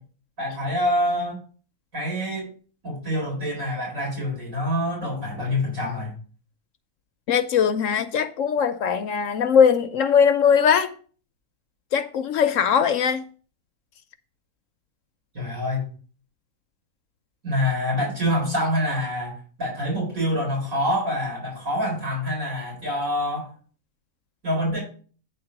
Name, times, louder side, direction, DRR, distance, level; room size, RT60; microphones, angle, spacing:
voice 1, 0.4-1.4 1.9-2.5 2.8-6.1 15.3-15.9 17.4-23.5 24.4-24.8, left 1 dB, 60° right, 4.7 m, -26 dB
voice 2, 7.3-10.9 11.9-13.3, left 7 dB, 65° left, 0.9 m, -20 dB
9.3 x 3.9 x 5.8 m
omnidirectional pair, 1.6 m